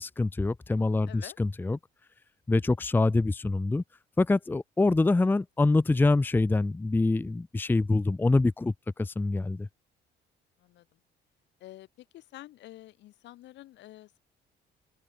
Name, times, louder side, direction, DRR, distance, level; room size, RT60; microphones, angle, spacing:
voice 1, 0.0-1.8 2.5-3.8 4.2-9.7, left 2 dB, 10° left, 0.6 m, -25 dB
voice 2, 1.1-1.4 10.6-11.0 11.6-14.2, left 15 dB, 75° left, 2.6 m, -48 dB
open air
cardioid pair, 110°, 18 cm